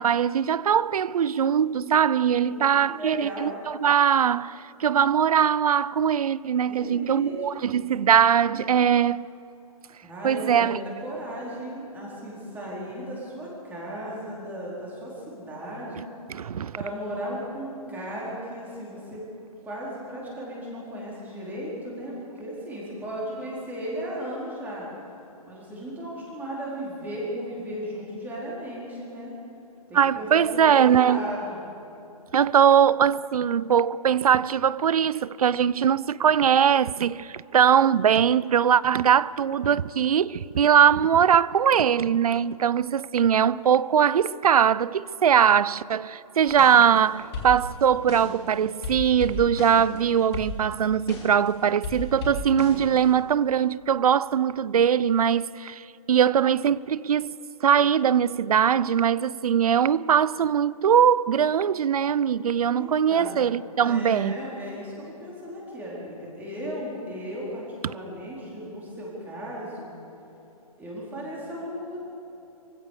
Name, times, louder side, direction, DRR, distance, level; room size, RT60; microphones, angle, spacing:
voice 1, 0.0-9.3 10.2-10.8 16.3-16.8 29.9-31.2 32.3-57.4 57.6-64.4 67.8-67.9, right 8 dB, 65° right, 0.6 m, -21 dB
voice 2, 2.4-3.5 6.7-7.8 10.0-16.0 16.7-19.2 19.6-24.9 25.5-29.3 29.9-31.6 62.7-69.9 70.8-72.0, equal, 10° right, 4.5 m, -36 dB
sound 1, 46.5-47.0 47.3-48.5 48.8-51.5 51.8-53.2, left 2 dB, 40° left, 4.1 m, -35 dB
24.5 x 15.5 x 6.8 m
hypercardioid pair, 155°, 20 cm